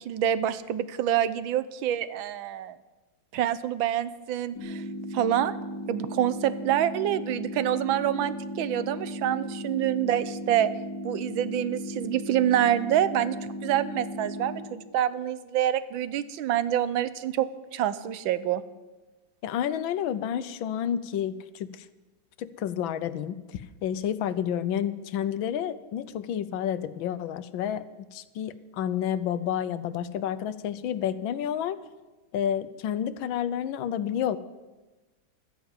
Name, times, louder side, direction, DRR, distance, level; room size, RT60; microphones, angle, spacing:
voice 1, 0.0-2.8 3.3-4.8 5.1-5.6 5.9-10.7 11.0-13.4 13.6-18.6, right 11 dB, 90° right, 15 dB, 1.5 m, -26 dB
sound 1, 4.5-14.6, equal, 50° left, 3.4 m, -36 dB
voice 2, 19.4-21.8 22.4-27.8 28.1-31.8 32.3-34.4, left 9 dB, 85° left, 14 dB, 1.5 m, -30 dB
13.0 x 10.5 x 8.9 m, 1.2 s
omnidirectional pair, 2.1 m